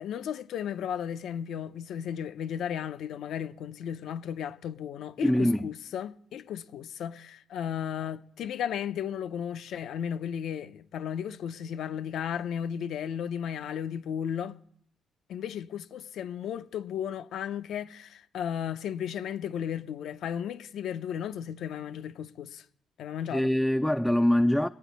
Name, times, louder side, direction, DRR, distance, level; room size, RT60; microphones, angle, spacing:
voice 1, 0.0-14.6 15.3-22.6 23.0-23.5, left 9 dB, 75° left, 0.6 m, -34 dB
voice 2, 5.2-5.7 23.3-24.7, left 1 dB, 5° left, 0.4 m, -24 dB
22.0 x 9.1 x 4.0 m
cardioid pair, 90°, 0 cm